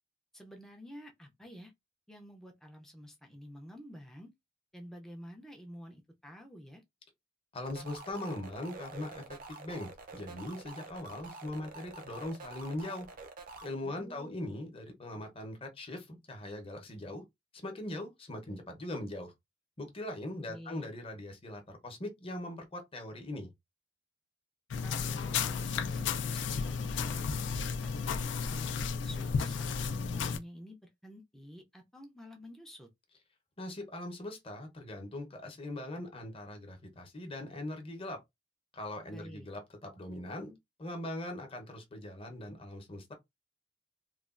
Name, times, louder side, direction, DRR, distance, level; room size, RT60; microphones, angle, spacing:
voice 1, 0.3-1.7 2.1-4.3 4.7-6.8 13.8-14.5 20.5-20.9 24.8-27.3 27.8-28.8 29.0-32.9 39.1-39.5, equal, ahead, 0.4 m, -50 dB
voice 2, 7.5-13.1 13.6-17.2 17.6-19.3 19.8-23.5 33.6-38.2 38.7-40.5 40.8-43.1, left 1 dB, 30° left, 0.8 m, -41 dB
sound 1, 7.7-13.7, right 3 dB, 50° right, 0.5 m, -48 dB
sound 2, 24.7-30.4, left 5 dB, 70° left, 0.4 m, -33 dB
3.1 x 2.2 x 2.4 m
head